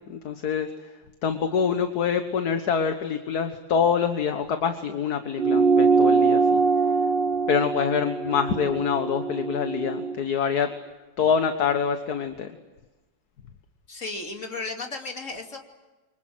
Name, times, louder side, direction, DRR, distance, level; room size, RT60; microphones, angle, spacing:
voice 1, 0.1-0.9 1.2-6.6 7.5-10.8 11.2-12.5, left 7 dB, 60° left, 7 dB, 1.9 m, -25 dB
sound 1, 5.4-10.2, right 4 dB, 40° right, 1.0 m, -22 dB
voice 2, 13.9-15.6, left 3 dB, 45° left, 3 dB, 3.2 m, -34 dB
29.0 x 25.0 x 7.9 m, 1.2 s
omnidirectional pair, 1.9 m